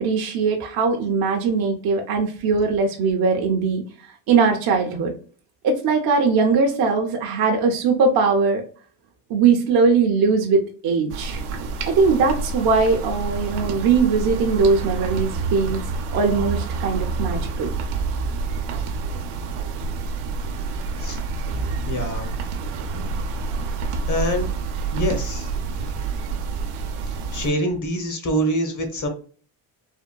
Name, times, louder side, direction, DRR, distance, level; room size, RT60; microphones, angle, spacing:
voice 1, 0.0-3.8 4.3-5.1 5.6-8.6 9.3-11.4 11.9-15.8 16.1-17.7, right 4 dB, 50° right, 2 dB, 0.6 m, -20 dB
sound 1, 11.1-27.5, right 4 dB, 85° right, 0.7 m, -28 dB
voice 2, 21.8-22.3 24.1-24.5 24.9-25.5 25.8-25.9 27.3-29.1, equal, 40° left, 5 dB, 0.8 m, -25 dB
3.6 x 2.1 x 2.2 m, 0.42 s
cardioid pair, 100°, 49 cm